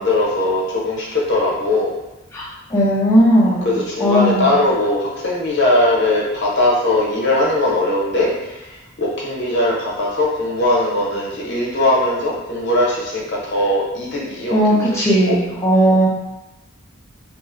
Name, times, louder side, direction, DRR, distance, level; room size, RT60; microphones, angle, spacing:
voice 1, 0.0-1.9 3.5-15.4, left 1 dB, 55° left, -4 dB, 0.7 m, -20 dB
voice 2, 2.7-3.7 4.0-4.5 14.5-16.1, equal, 15° left, -8 dB, 0.3 m, -16 dB
2.7 x 2.0 x 2.5 m, 0.97 s
head